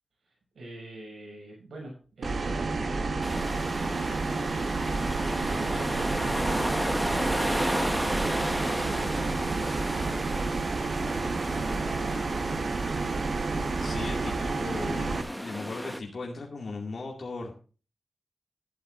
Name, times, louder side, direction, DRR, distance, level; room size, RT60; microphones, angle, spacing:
voice 1, 0.2-3.1 5.2-7.7 8.6-11.2 11.5-12.2 13.8-14.6, right 1 dB, 80° right, -2 dB, 6.7 m, -44 dB
sound 1, 2.2-15.2, right 3 dB, 55° right, 1.3 m, -30 dB
sound 2, 3.2-16.0, equal, 5° right, 1.1 m, -33 dB
voice 2, 13.8-17.5, left 3 dB, 50° left, -1 dB, 2.3 m, -37 dB
13.0 x 11.0 x 2.5 m, 0.35 s
wide cardioid pair, 115°, 0 cm